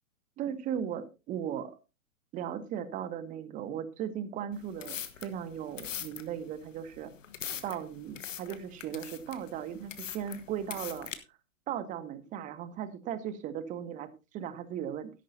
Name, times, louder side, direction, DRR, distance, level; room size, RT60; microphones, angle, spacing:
voice 1, 0.4-1.7 2.3-7.1 7.6-11.1 11.7-15.1, right 9 dB, 15° right, 14 dB, 0.9 m, -37 dB
sound 1, 4.5-11.1, left 9 dB, 60° left, 1.4 m, -42 dB
13.0 x 11.0 x 2.8 m, 0.28 s
figure-of-eight pair, 110°, 43 cm